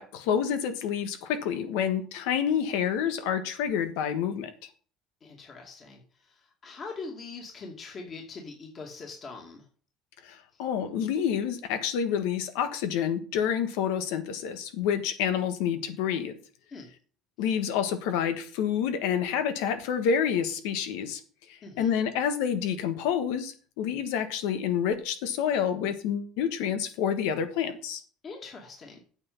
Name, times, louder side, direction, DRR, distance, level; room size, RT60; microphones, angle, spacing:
voice 1, 0.0-4.5 10.2-16.3 17.4-21.2 21.5-28.0, left 8 dB, 85° left, 10 dB, 1.4 m, -28 dB
voice 2, 5.2-9.7 10.5-10.6 16.7-16.9 21.6-22.0 28.2-29.0, left 4 dB, 35° left, 0 dB, 2.4 m, -42 dB
8.8 x 6.4 x 5.5 m, 0.41 s
cardioid pair, 125°, 0 cm